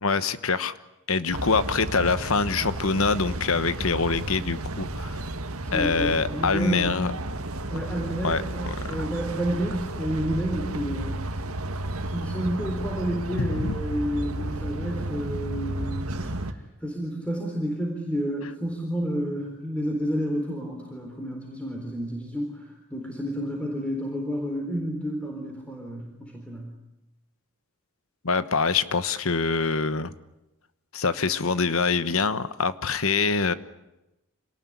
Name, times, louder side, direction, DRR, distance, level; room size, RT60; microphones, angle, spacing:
voice 1, 0.0-0.7 1.1-5.2 5.7-7.1 8.2-8.7 13.4-13.8 28.2-30.1 30.9-33.5, left 4 dB, 65° left, 13 dB, 1.2 m, -25 dB
sound 1, 1.3-16.5, right 1 dB, 75° right, 1.7 m, -32 dB
voice 2, 5.6-7.0 7.7-11.4 12.0-26.7, equal, 5° left, 0 dB, 3.9 m, -30 dB
27.0 x 19.0 x 9.9 m, 0.93 s
head